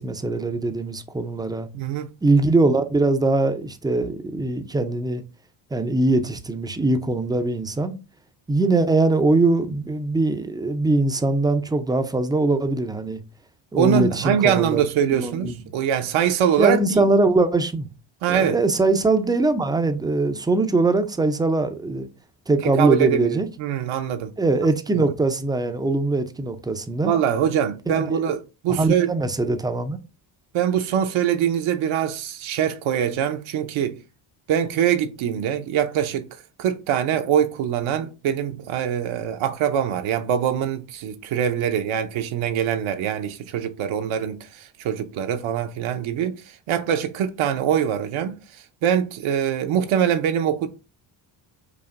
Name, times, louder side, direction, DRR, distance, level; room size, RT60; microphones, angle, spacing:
voice 1, 0.0-1.7 2.2-5.2 5.7-7.9 8.5-13.2 13.7-14.8 15.1-15.6 16.6-17.9 18.3-22.1 22.5-23.5 24.4-27.1 27.9-28.2 28.7-30.0, right 2 dB, 10° right, 0.3 m, -22 dB
voice 2, 1.7-2.1 13.8-17.1 18.2-18.6 22.6-24.3 24.9-25.0 27.0-29.1 30.5-34.0 34.5-36.3 36.6-48.4 48.8-50.7, right 9 dB, 75° right, 0.7 m, -23 dB
4.9 x 2.5 x 2.4 m
cardioid pair, 100°, 48 cm